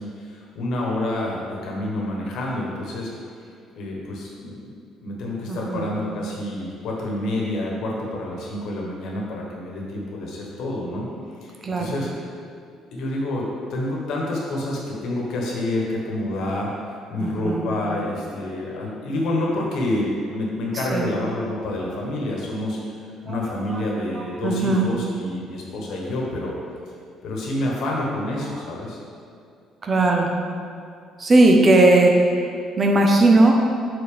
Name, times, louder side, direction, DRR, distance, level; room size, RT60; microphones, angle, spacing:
voice 1, 0.0-3.1 3.7-4.6 5.0-11.1 11.4-12.1 12.9-16.7 17.1-22.8 23.2-26.5 27.2-29.0, left 1 dB, 60° left, -2 dB, 1.4 m, -28 dB
voice 2, 5.5-5.9 11.6-11.9 17.2-17.7 20.7-21.1 23.3-23.4 23.7-23.8 24.1-24.8 28.5-28.7 29.8-30.3 31.2-33.5, right 2 dB, 25° right, 2 dB, 0.7 m, -18 dB
7.0 x 4.1 x 5.1 m, 2.3 s
cardioid pair, 175°, 0 cm